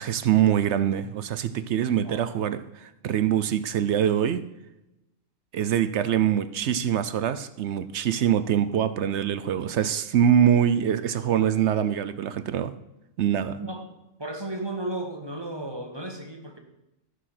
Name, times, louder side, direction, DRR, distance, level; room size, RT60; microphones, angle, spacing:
voice 1, 0.0-4.4 5.5-12.7 13.2-13.6, right 9 dB, 65° right, 13 dB, 0.8 m, -24 dB
voice 2, 14.2-16.6, right 1 dB, 20° right, 3 dB, 1.4 m, -34 dB
13.5 x 6.5 x 5.7 m, 0.92 s
omnidirectional pair, 1.4 m